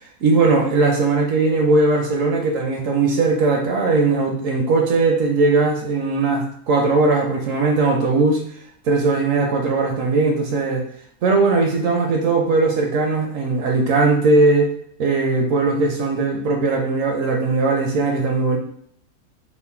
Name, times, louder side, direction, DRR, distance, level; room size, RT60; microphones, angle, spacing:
voice 1, 0.2-8.4 8.8-10.9 11.2-14.7 15.0-18.6, right 3 dB, 70° right, 2 dB, 0.8 m, -19 dB
3.1 x 2.1 x 4.2 m, 0.65 s
omnidirectional pair, 1.6 m